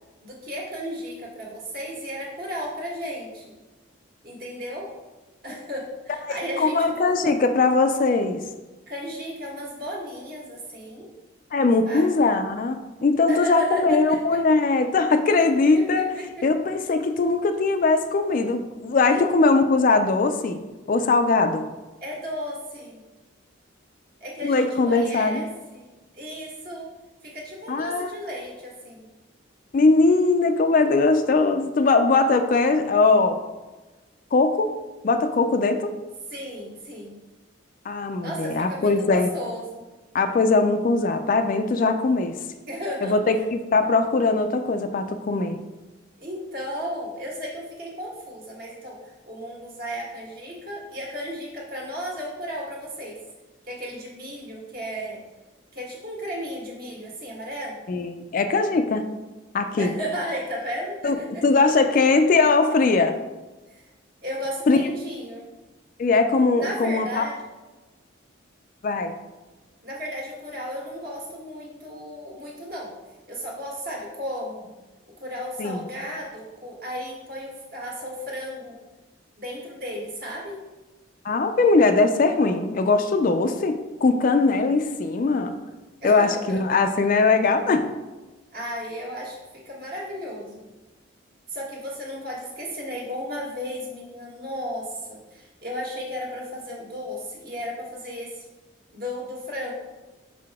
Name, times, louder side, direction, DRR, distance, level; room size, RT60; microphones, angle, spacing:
voice 1, 0.2-3.4 4.2-4.9 5.4-7.4 8.9-11.1 11.8-12.2 13.3-14.4 15.4-15.5 15.8-16.4 19.1-19.3 22.0-23.0 24.2-25.5 25.7-25.9 26.1-26.9 27.2-29.1 36.3-37.2 38.2-39.8 42.7-43.1 46.2-49.0 49.3-53.2 53.7-55.2 55.7-57.8 59.8-61.4 63.7-63.9 64.2-65.5 66.6-67.4 69.8-72.9 73.3-74.7 75.2-78.7 79.4-80.6 86.0-86.6 88.5-90.7 91.5-98.4 98.9-99.7, equal, 50° right, -3 dB, 1.5 m, -34 dB
voice 2, 6.3-8.4 11.5-16.0 16.4-20.6 20.9-21.7 24.4-25.4 27.7-28.2 29.7-33.4 34.3-34.7 35.0-36.0 37.9-39.3 40.1-42.3 43.0-45.6 57.9-59.0 59.5-59.9 61.0-61.2 61.4-63.2 64.7-64.8 66.0-67.2 68.8-69.1 75.6-75.8 81.2-85.5 86.0-87.9, left 3 dB, 40° left, 8 dB, 0.3 m, -20 dB
5.7 x 4.8 x 3.5 m, 1.2 s
head